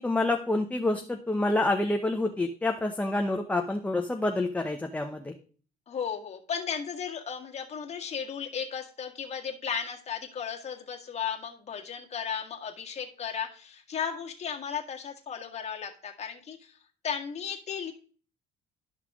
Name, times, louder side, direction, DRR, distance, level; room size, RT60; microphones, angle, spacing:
voice 1, 0.0-5.3, left 2 dB, 10° left, 4 dB, 0.8 m, -28 dB
voice 2, 5.9-16.8 17.0-17.9, left 7 dB, 40° left, 2 dB, 1.8 m, -35 dB
12.0 x 5.7 x 3.6 m, 0.42 s
cardioid pair, 110°, 17 cm